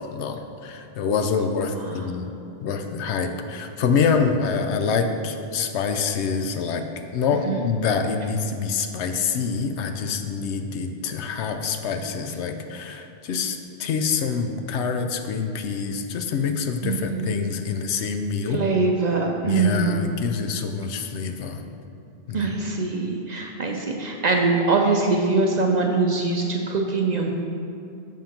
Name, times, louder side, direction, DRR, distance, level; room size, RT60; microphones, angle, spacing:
voice 1, 0.0-2.3 2.6-6.9 7.1-18.6 19.4-21.6 22.3-22.6, left 5 dB, 85° left, 6 dB, 0.9 m, -26 dB
voice 2, 16.8-17.5 18.5-20.1 22.3-27.3, right 3 dB, 50° right, 1 dB, 0.5 m, -23 dB
7.2 x 3.7 x 5.7 m, 2.6 s
omnidirectional pair, 1.1 m